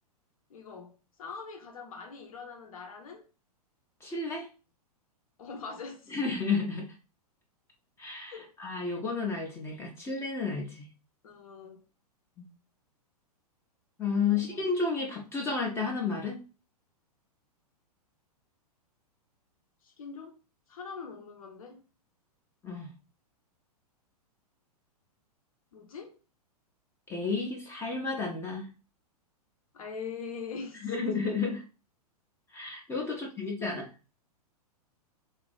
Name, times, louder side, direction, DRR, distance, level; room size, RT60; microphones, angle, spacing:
voice 1, 0.5-3.3 5.4-6.2 8.3-8.5 11.2-11.8 14.3-14.7 19.8-20.4 20.7-21.8 25.7-26.2 29.7-31.1 33.1-33.2, left 5 dB, 60° left, 0.8 m, -43 dB
voice 2, 4.0-4.5 6.1-6.9 8.0-10.9 12.4-12.5 14.0-16.4 22.6-22.9 27.1-28.7 30.8-31.6 32.5-33.9, left 4 dB, 15° left, 0.5 m, -32 dB
3.2 x 2.4 x 2.3 m
figure-of-eight pair, 105°, 20 cm